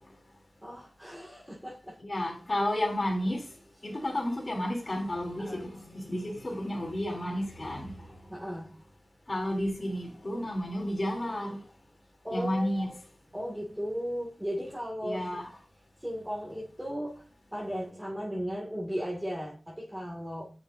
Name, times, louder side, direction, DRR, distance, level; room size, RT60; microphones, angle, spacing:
voice 1, 0.6-2.0 5.4-5.7 8.3-8.7 12.2-12.9 13.3-15.3 16.0-20.5, equal, 10° right, 2.3 m, -36 dB
voice 2, 2.0-3.4 3.8-8.0 9.3-11.6 12.3-12.9 15.0-15.4, left 1 dB, 40° left, 3.3 m, -31 dB
9.2 x 6.6 x 2.7 m
wide cardioid pair, 65°, 0 cm